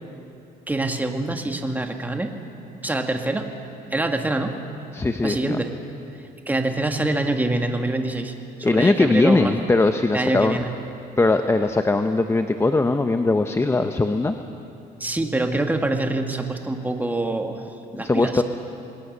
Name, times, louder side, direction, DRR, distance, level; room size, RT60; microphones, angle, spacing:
voice 1, 0.7-2.3 2.8-3.5 3.9-4.5 5.2-5.7 6.5-8.3 8.6-9.5 10.1-10.7 15.0-18.4, right 2 dB, 10° right, 4 dB, 2.0 m, -25 dB
voice 2, 4.9-5.6 8.6-10.6 11.2-14.4 17.9-18.4, left 3 dB, 15° left, 7 dB, 0.9 m, -20 dB
27.5 x 20.0 x 6.7 m, 2.8 s
cardioid pair, 110°, 17 cm